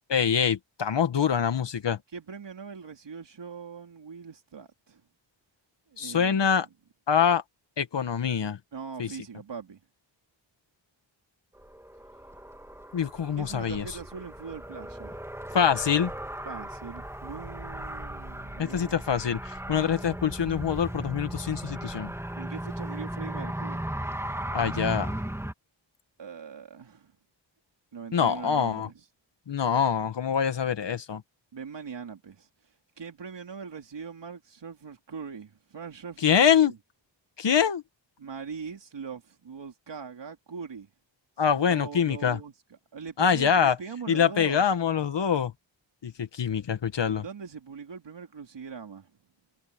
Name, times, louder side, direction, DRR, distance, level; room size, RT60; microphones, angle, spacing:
voice 1, 0.1-2.0 6.0-6.7 7.1-7.4 7.8-8.6 9.0-9.1 12.9-13.8 15.5-16.1 18.6-22.1 24.5-25.1 28.1-28.9 29.5-31.2 36.2-36.7 37.4-37.8 41.4-42.4 43.2-43.8 44.1-45.5 46.0-47.2, left 7 dB, 65° left, 1.6 m, -25 dB
voice 2, 2.1-5.0 5.9-6.5 8.7-9.8 13.4-15.3 16.4-18.9 22.4-23.9 26.2-27.1 27.9-29.0 31.5-32.5 33.0-36.8 38.2-40.9 41.6-42.5 42.9-44.6 47.2-49.1, right 6 dB, 65° right, 3.8 m, -41 dB
Car, 11.6-25.5, right 1 dB, 5° right, 2.3 m, -37 dB
wide cardioid pair, 105°, 47 cm